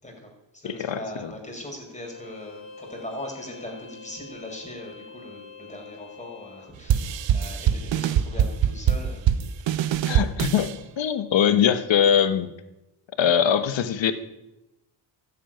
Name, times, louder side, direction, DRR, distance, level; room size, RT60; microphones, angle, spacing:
voice 1, 0.0-9.3 9.6-10.0, left 1 dB, 15° left, 1 dB, 5.3 m, -40 dB
voice 2, 0.6-1.3 10.1-12.5 13.2-14.1, left 8 dB, 65° left, 11 dB, 1.3 m, -22 dB
Bowed string instrument, 1.9-6.8, left 4 dB, 45° left, 4.0 m, -45 dB
sound 1, 6.9-10.7, right 9 dB, 70° right, 0.9 m, -23 dB
13.0 x 8.5 x 9.2 m, 0.97 s
cardioid pair, 90°, 48 cm